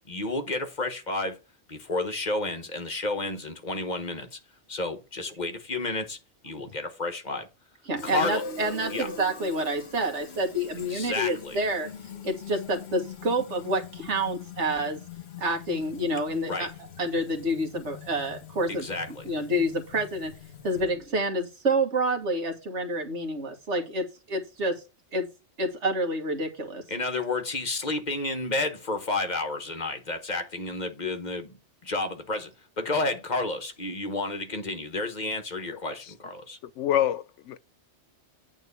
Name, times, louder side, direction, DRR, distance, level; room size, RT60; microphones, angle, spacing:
voice 1, 0.1-1.4 1.7-4.4 4.7-6.2 6.4-7.5 8.0-8.4 8.9-9.1 10.9-11.6 16.4-16.7 18.7-19.2 26.9-31.5 31.8-32.5 32.8-36.6, left 2 dB, 40° left, 1.2 m, -31 dB
voice 2, 7.9-11.9 12.2-15.0 15.4-16.7 17.0-20.3 20.6-24.7 25.1-25.3 25.6-26.8, right 1 dB, 75° right, 1.9 m, -28 dB
Fill (with liquid), 8.0-21.1, left 5 dB, 60° left, 1.3 m, -42 dB
voice 3, 36.6-37.6, left 11 dB, 85° left, 0.9 m, -26 dB
8.8 x 3.6 x 6.8 m
omnidirectional pair, 1.2 m